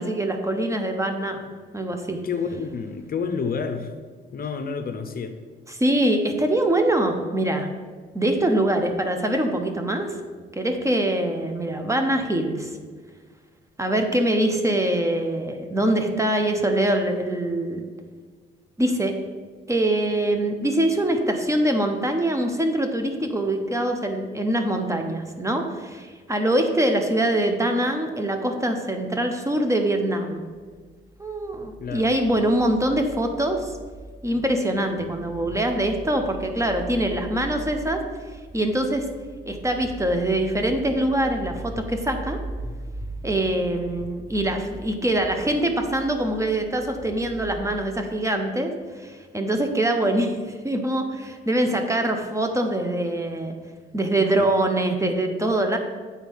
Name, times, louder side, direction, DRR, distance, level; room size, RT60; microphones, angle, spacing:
voice 1, 0.0-1.4 1.7-2.2 5.7-7.7 8.1-10.1 10.5-12.8 13.8-17.8 18.8-19.1 19.7-30.4 31.2-33.7 34.2-38.0 38.5-39.1 39.5-42.4 43.2-53.5 53.9-55.8, right 1 dB, 15° right, 5 dB, 0.9 m, -24 dB
voice 2, 2.2-3.9 4.3-5.4 31.8-32.1 34.3-34.4 54.4-54.5, left 5 dB, 50° left, 7 dB, 0.7 m, -29 dB
sound 1, 30.4-47.6, right 2 dB, 90° right, 2.0 m, -40 dB
8.1 x 4.2 x 5.5 m, 1.5 s
cardioid pair, 90°, 20 cm